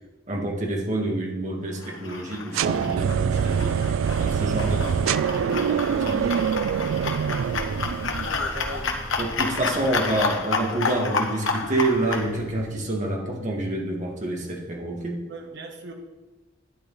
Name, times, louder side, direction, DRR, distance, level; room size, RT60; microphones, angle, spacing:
voice 1, 0.3-3.8 4.2-6.7 9.2-15.2, right 1 dB, 40° right, -2 dB, 2.3 m, -28 dB
sound 1, 1.8-12.3, left 4 dB, 85° left, 1.3 m, -30 dB
sound 2, 2.5-8.5, right 7 dB, 80° right, 0.3 m, -25 dB
sound 3, 2.6-12.7, equal, 45° left, 2.8 m, -41 dB
voice 2, 7.5-7.9 8.1-9.0 15.3-15.9, right 2 dB, 60° right, 2 dB, 1.6 m, -39 dB
11.5 x 10.5 x 4.2 m, 1.1 s
head